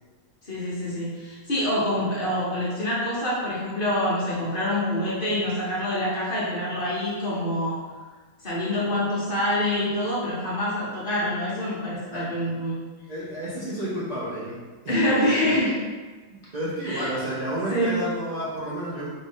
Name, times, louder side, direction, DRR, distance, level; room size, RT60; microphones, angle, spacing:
voice 1, 0.4-7.8 8.4-12.8 14.9-15.8 16.8-17.1 17.7-18.1, left 1 dB, 40° left, -8 dB, 1.1 m, -26 dB
voice 2, 13.1-14.6 16.3-19.1, right 1 dB, 45° right, -9 dB, 0.6 m, -31 dB
3.7 x 2.6 x 3.6 m, 1.4 s
omnidirectional pair, 1.5 m